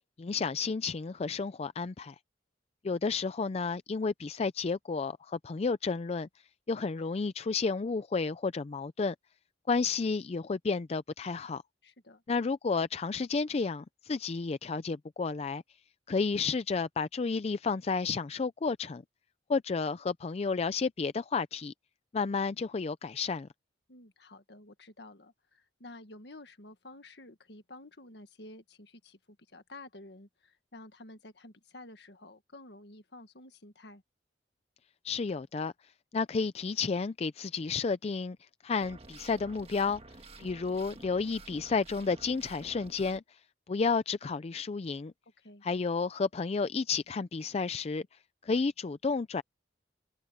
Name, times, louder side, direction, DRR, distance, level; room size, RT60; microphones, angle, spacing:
voice 1, 0.2-2.1 2.8-6.3 6.7-9.1 9.7-11.6 12.3-15.6 16.1-19.0 19.5-21.7 22.1-23.5 35.0-35.7 36.1-38.4 38.6-40.0 40.4-43.2 43.7-45.1 45.6-48.0 48.4-49.4, left 4 dB, 35° left, 0.4 m, -31 dB
voice 2, 11.8-12.2 23.9-34.0 45.4-45.6, left 2 dB, 70° left, 1.8 m, -51 dB
sound 1, 38.8-43.2, right 2 dB, 35° right, 1.6 m, -51 dB
head